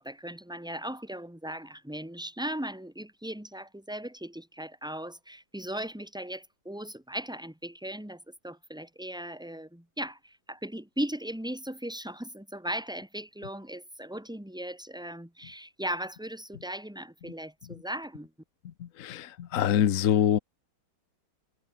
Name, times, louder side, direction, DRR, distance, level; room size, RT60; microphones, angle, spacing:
voice 1, 0.0-18.3, right 1 dB, ahead, 2.4 m, -38 dB
voice 2, 18.8-20.4, left 10 dB, 55° left, 1.0 m, -25 dB
omnidirectional pair, 2.1 m